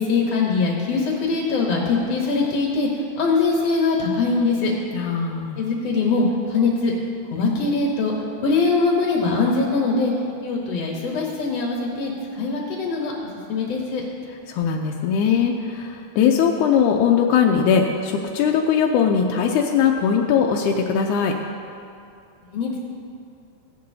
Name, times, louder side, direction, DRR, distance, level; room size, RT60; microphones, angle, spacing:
voice 1, 0.0-4.7 5.6-6.9 7.3-8.1 8.4-10.1 10.4-13.1 13.5-14.0 22.5-22.8, left 4 dB, 65° left, -2 dB, 2.0 m, -22 dB
voice 2, 4.9-5.6 14.5-21.3, left 7 dB, 85° left, 1 dB, 2.1 m, -20 dB
16.0 x 10.5 x 2.7 m, 2.5 s
omnidirectional pair, 3.5 m